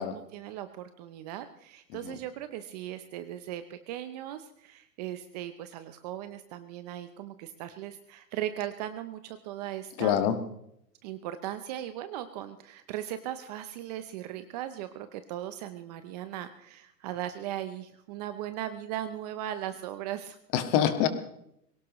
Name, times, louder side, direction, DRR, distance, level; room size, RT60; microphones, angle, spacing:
voice 1, 0.0-10.2 11.0-20.4, right 12 dB, 25° right, 11 dB, 0.6 m, -38 dB
voice 2, 10.0-10.4 20.5-21.1, left 9 dB, 35° left, 9 dB, 1.8 m, -25 dB
22.5 x 18.0 x 3.1 m, 0.76 s
hypercardioid pair, 135°, 50 cm